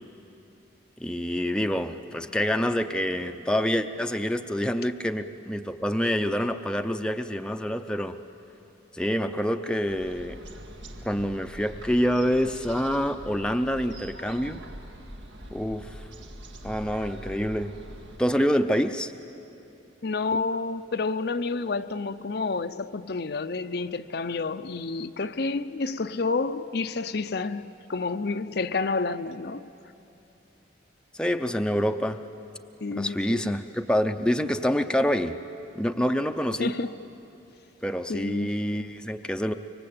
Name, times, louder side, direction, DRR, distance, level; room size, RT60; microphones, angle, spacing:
voice 1, 1.0-8.2 8.9-10.4 11.0-14.6 15.5-16.0 16.6-17.7 18.2-19.1 31.1-32.2 32.9-35.4 35.8-36.7 37.8-39.5, equal, 5° left, 0.6 m, -26 dB
sound 1, 9.9-18.2, right 1 dB, 75° right, 1.8 m, -43 dB
voice 2, 20.0-29.7 32.8-33.6 36.6-37.0 38.1-38.5, left 4 dB, 55° left, 0.6 m, -29 dB
25.5 x 24.0 x 8.7 m
head